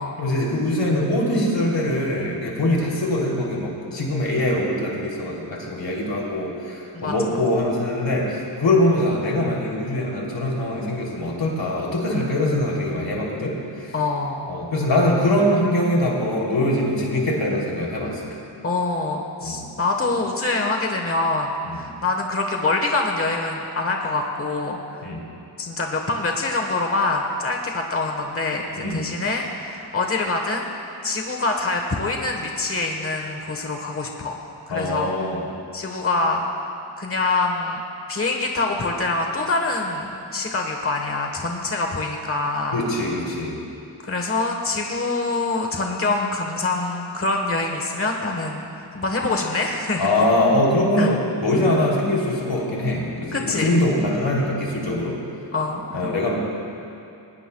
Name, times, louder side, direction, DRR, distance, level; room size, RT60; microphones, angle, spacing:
voice 1, 0.2-13.9 14.5-18.3 19.4-19.6 21.6-21.8 25.0-25.2 28.7-29.1 34.7-35.4 42.7-43.6 50.0-55.2 55.9-56.4, left 1 dB, 85° left, -3 dB, 3.3 m, -23 dB
voice 2, 6.9-7.4 13.9-14.6 18.6-25.0 25.6-30.7 31.0-34.4 34.7-35.1 35.7-36.4 37.0-37.8 38.1-42.8 44.0-50.3 51.0-51.1 53.3-53.8 55.5-56.2, left 3 dB, 30° left, 2 dB, 1.2 m, -25 dB
21.5 x 19.0 x 2.3 m, 2.6 s
wide cardioid pair, 115°, 43 cm